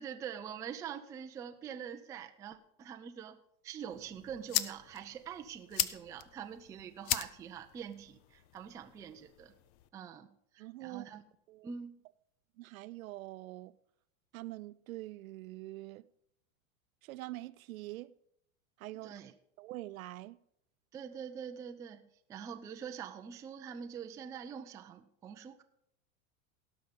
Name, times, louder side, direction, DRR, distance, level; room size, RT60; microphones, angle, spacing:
voice 1, 0.0-9.5 9.9-10.3 10.5-11.2 11.6-12.0 19.0-19.3 20.9-22.0 22.3-25.6, right 8 dB, 10° right, 0.3 m, -45 dB
sound 1, 3.9-9.9, left 12 dB, 35° left, 0.6 m, -39 dB
voice 2, 10.6-11.1 11.5-11.7 12.6-13.8 14.3-16.1 17.0-18.1 18.8-19.2 19.6-20.4, right 17 dB, 70° right, 0.6 m, -45 dB
17.5 x 5.8 x 5.2 m
hypercardioid pair, 120°, 43 cm